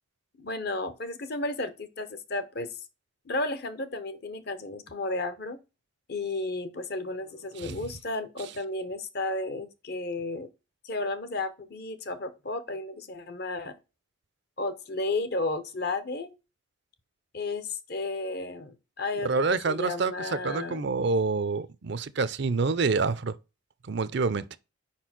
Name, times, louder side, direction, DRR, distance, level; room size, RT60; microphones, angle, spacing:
voice 1, 0.4-2.7 3.3-5.6 6.1-10.5 10.8-13.7 14.6-16.3 17.3-21.0, left 2 dB, 50° left, 0.8 m, -33 dB
voice 2, 19.2-23.4 23.9-24.6, right 4 dB, 55° right, 0.5 m, -27 dB
5.2 x 4.4 x 5.9 m
head